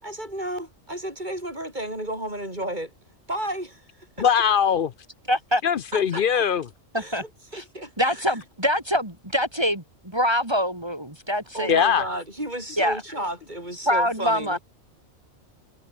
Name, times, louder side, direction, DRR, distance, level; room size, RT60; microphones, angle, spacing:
voice 1, 0.0-2.9 3.3-3.9 4.2-4.3 5.9-6.4 6.9-8.4 11.5-14.6, right 1 dB, 35° right, 8.2 m, -33 dB
voice 2, 4.2-4.9 5.6-6.6 11.7-12.0, left 7 dB, 55° left, 0.7 m, -21 dB
voice 3, 5.3-5.6 6.9-7.2 7.5-7.6 8.0-11.8 12.8-13.0 13.9-14.6, equal, 20° right, 3.2 m, -24 dB
omnidirectional pair, 1.4 m